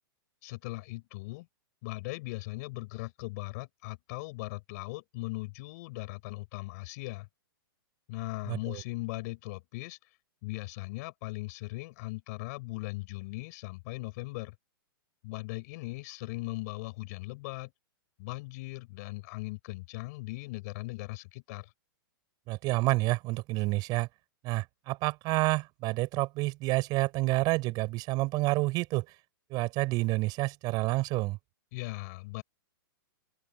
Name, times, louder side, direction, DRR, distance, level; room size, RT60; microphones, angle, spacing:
voice 1, 0.4-1.5 1.8-7.3 8.1-10.0 10.4-14.5 15.2-17.7 18.2-21.7 31.7-32.4, left 23 dB, 45° left, 6.3 m, -39 dB
voice 2, 8.5-8.8 22.5-24.1 24.4-29.0 29.5-31.4, right 21 dB, 35° right, 5.9 m, -29 dB
open air
hypercardioid pair, 140°, 12 cm